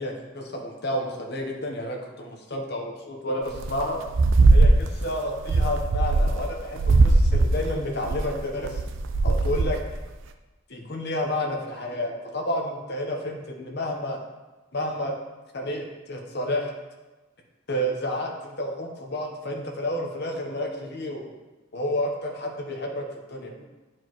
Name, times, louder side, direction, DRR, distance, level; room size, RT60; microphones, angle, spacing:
voice 1, 0.0-4.0 4.5-8.8 9.2-9.8 10.7-14.2 14.7-15.1 15.5-16.7 17.7-21.3 21.7-23.5, left 1 dB, 50° left, 1 dB, 1.0 m, -30 dB
sound 1, 3.5-3.8 4.1-5.0 5.4-6.5 6.8-9.9, right 2 dB, 65° right, 0.4 m, -19 dB
10.0 x 4.6 x 3.0 m, 1.2 s
head